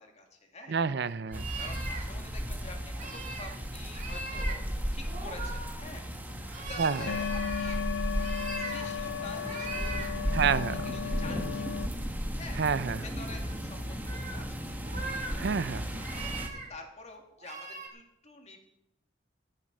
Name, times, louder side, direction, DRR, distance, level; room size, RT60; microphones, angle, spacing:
voice 1, 0.0-0.8 1.6-6.1 6.6-7.8 8.5-10.3 10.8-11.8 12.4-14.8 15.3-18.6, left 3 dB, 35° left, 3 dB, 2.4 m, -48 dB
voice 2, 0.7-1.5 6.5-7.0 10.3-10.7 12.6-13.0 15.4-16.0, right 5 dB, 60° right, 16 dB, 0.5 m, -29 dB
sound 1, 1.3-16.5, equal, 10° right, 1.4 m, -35 dB
sound 2, 1.3-2.0 2.9-3.5 3.9-4.5 5.0-6.0 6.5-7.8 8.2-8.9 9.4-10.1 10.6-10.7 12.7-12.8 13.2-13.6 14.0-14.5 14.8-15.3 15.9-16.7 17.4-17.9, right 3 dB, 40° right, 2.7 m, -40 dB
sound 3, 7.1-11.9, left 7 dB, 80° left, 0.4 m, -35 dB
14.0 x 9.9 x 6.1 m, 0.85 s
head